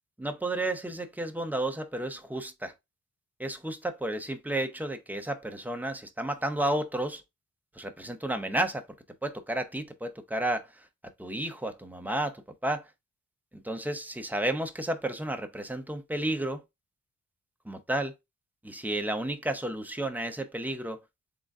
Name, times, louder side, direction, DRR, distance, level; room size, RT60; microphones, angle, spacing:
voice 1, 0.2-2.7 3.4-7.2 7.8-8.9 9.2-10.8 11.2-12.9 13.5-16.6 17.6-18.1 18.6-21.0, right 1 dB, 5° right, 0.7 m, -32 dB
3.9 x 3.7 x 3.5 m
wide cardioid pair, 130°, 32 cm